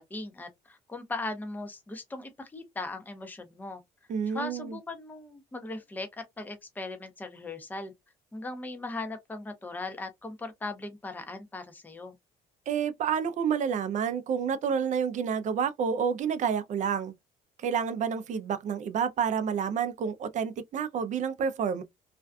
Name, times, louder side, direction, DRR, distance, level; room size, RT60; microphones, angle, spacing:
voice 1, 0.0-3.8 4.3-7.9 8.3-12.1, left 2 dB, 10° left, 0.6 m, -38 dB
voice 2, 4.1-4.8 12.7-17.1 17.6-21.8, right 7 dB, 45° right, 0.4 m, -29 dB
2.5 x 2.2 x 2.2 m
cardioid pair, 110°, 17 cm